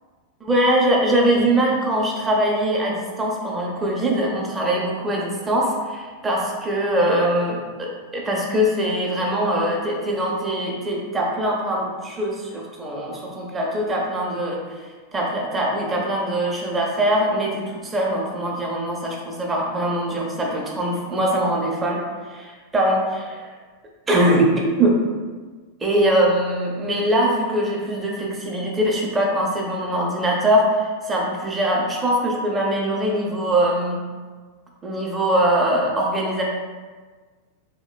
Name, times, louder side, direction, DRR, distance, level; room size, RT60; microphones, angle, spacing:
voice 1, 0.4-22.0 22.3-23.5 24.1-25.0 25.8-34.0 34.8-36.4, right 1 dB, 15° right, -2 dB, 0.6 m, -22 dB
2.9 x 2.8 x 2.3 m, 1.4 s
figure-of-eight pair, 90°, 0 cm